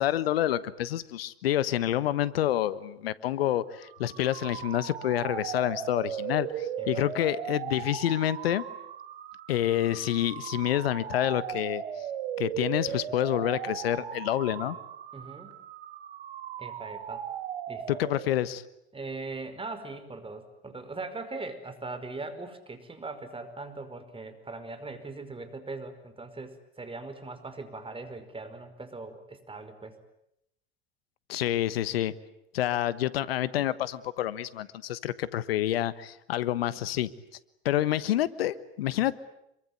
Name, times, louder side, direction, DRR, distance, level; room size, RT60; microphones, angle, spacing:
voice 1, 0.0-8.7 9.5-11.8 12.4-14.8 17.9-18.6 31.3-32.1 32.5-37.1 37.6-39.1, left 12 dB, 80° left, 16 dB, 1.3 m, -28 dB
sound 1, 3.8-18.5, right 9 dB, 80° right, 2.3 m, -37 dB
voice 2, 6.8-7.3 15.1-15.5 16.6-17.3 17.7-18.0 18.9-30.0, right 3 dB, 20° right, 9 dB, 5.2 m, -40 dB
26.5 x 23.5 x 9.5 m, 0.78 s
hypercardioid pair, 75°, 30 cm